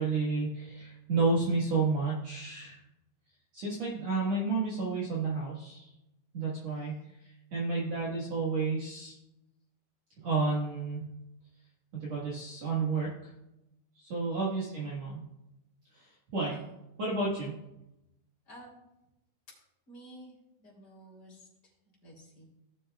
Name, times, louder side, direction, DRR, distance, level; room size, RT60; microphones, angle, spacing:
voice 1, 0.0-2.8 3.5-5.9 6.3-7.0 7.5-9.1 10.2-11.0 11.9-13.3 14.0-15.2 15.9-16.6 17.0-17.5, right 3 dB, 50° right, -7 dB, 2.3 m, -31 dB
voice 2, 6.8-7.1 14.3-14.6 16.5-16.6 18.5-18.8 19.9-20.3 20.6-21.7 22.0-22.4, right 1 dB, 25° left, -3 dB, 3.5 m, -52 dB
17.5 x 7.1 x 2.4 m, 0.91 s
omnidirectional pair, 4.5 m